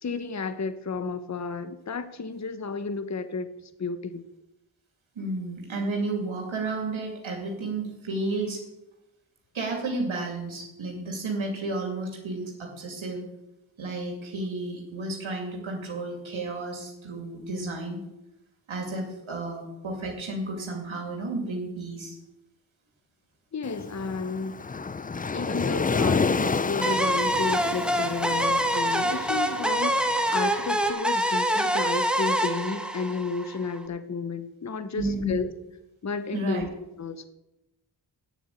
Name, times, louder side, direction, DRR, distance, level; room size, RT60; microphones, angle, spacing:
voice 1, 0.0-3.5 3.8-4.2 23.5-24.5 25.3-35.5 36.0-36.7 37.0-37.3, left 4 dB, 35° left, 11 dB, 0.9 m, -32 dB
voice 2, 5.2-8.6 9.5-13.2 13.8-18.0 18.7-22.2 34.9-35.4 36.3-36.6, right 2 dB, 80° right, 1 dB, 2.5 m, -32 dB
Waves surf, 23.6-30.7, left 4 dB, 20° left, 0.4 m, -30 dB
sound 1, 26.8-33.8, right 1 dB, ahead, 1.1 m, -25 dB
9.4 x 7.2 x 8.5 m, 0.92 s
wide cardioid pair, 75°, 47 cm